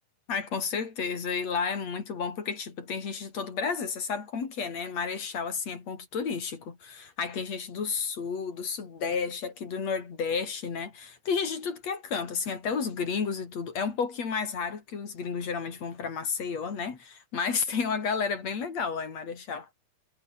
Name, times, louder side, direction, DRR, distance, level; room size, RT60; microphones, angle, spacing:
voice 1, 0.3-19.7, left 5 dB, 50° left, 4.4 m, -32 dB
omnidirectional pair, 3.9 m